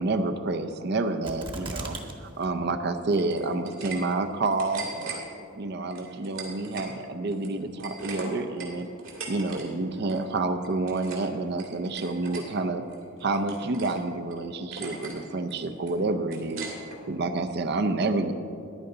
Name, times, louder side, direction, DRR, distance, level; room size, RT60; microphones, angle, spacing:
voice 1, 0.0-1.9 2.2-5.2 5.6-8.9 9.3-12.8 13.2-16.7 17.1-18.3, right 3 dB, 55° right, 9 dB, 0.6 m, -29 dB
sound 1, 1.2-2.1 2.4-2.5 3.1-3.6 4.1-4.2, right 2 dB, 25° right, 1.0 m, -37 dB
sound 2, 3.1-4.0 4.3-5.2 5.9-6.9 7.3-9.6 9.9-10.2 10.6-11.3 11.6-12.4 12.9-14.0 14.3-14.4 14.7-15.2 15.5-17.0, right 4 dB, 80° right, 2.4 m, -40 dB
14.0 x 10.5 x 3.9 m, 2.5 s
head